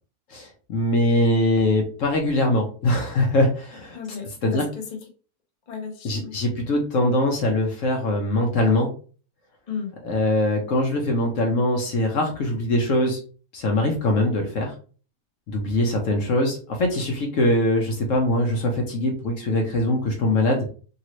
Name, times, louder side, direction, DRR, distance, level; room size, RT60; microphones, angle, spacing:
voice 1, 0.3-4.0 4.4-4.6 6.0-8.9 10.0-13.2 13.5-14.7 15.5-20.6, left 1 dB, 60° left, 1 dB, 1.0 m, -22 dB
voice 2, 3.9-5.1 5.7-6.4 9.7-9.9, left 6 dB, 35° left, 1 dB, 0.7 m, -34 dB
2.9 x 2.7 x 3.0 m, 0.39 s
omnidirectional pair, 1.6 m